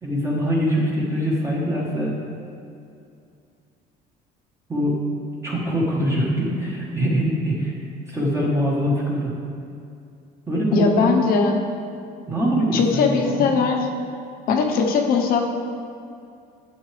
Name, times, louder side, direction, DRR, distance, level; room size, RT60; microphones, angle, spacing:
voice 1, 0.0-2.2 4.7-5.0 5.4-7.7 8.1-9.3 10.5-11.2 12.3-13.5, equal, 15° right, -5 dB, 1.4 m, -23 dB
voice 2, 10.7-11.6 12.7-13.9 14.5-15.4, left 5 dB, 55° left, 2 dB, 1.0 m, -20 dB
11.5 x 7.8 x 3.4 m, 2.5 s
cardioid pair, 155°, 18 cm